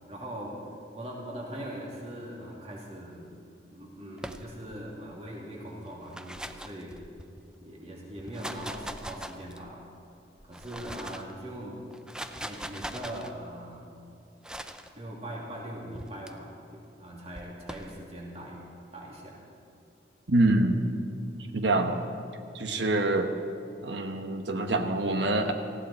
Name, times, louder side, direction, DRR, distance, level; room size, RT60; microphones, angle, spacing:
voice 1, 0.1-0.6 0.9-3.3 3.7-7.0 7.6-9.8 10.4-11.8 12.3-13.9 15.0-18.7 18.9-19.4, right 1 dB, 35° right, -3 dB, 2.8 m, -41 dB
sound 1, 4.2-4.8 5.9-7.4 8.1-9.8 10.4-11.3 11.9-13.3 14.4-14.9 15.9-16.3 17.3-17.9, right 1 dB, 5° right, 0.5 m, -41 dB
voice 2, 20.3-20.9 21.5-22.0 22.5-23.3 23.8-25.5, right 2 dB, 85° right, 6 dB, 1.2 m, -25 dB
19.0 x 15.5 x 4.3 m, 2.7 s
head